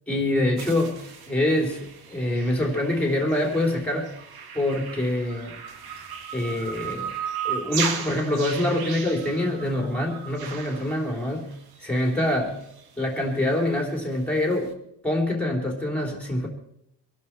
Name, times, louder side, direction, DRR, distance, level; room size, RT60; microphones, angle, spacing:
voice 1, 0.1-4.1 4.5-5.6 6.3-7.1 7.4-12.6 13.0-14.8 15.0-16.5, left 1 dB, 5° left, 2 dB, 3.2 m, -25 dB
sound 1, 0.6-11.8 12.1-12.2 12.5-12.6 12.8-12.9 13.2-13.3, right 7 dB, 60° right, 1.9 m, -36 dB
24.5 x 11.5 x 4.5 m, 0.77 s
cardioid pair, 175°, 43 cm